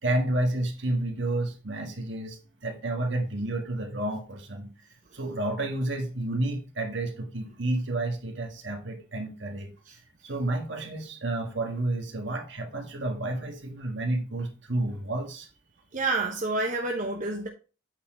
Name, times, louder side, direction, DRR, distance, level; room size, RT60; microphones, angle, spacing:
voice 1, 0.0-4.7 5.1-9.7 10.2-15.5, right 1 dB, 65° right, 1.6 m, -30 dB
voice 2, 15.9-17.5, right 3 dB, 40° right, 0.8 m, -28 dB
8.4 x 4.3 x 4.4 m
head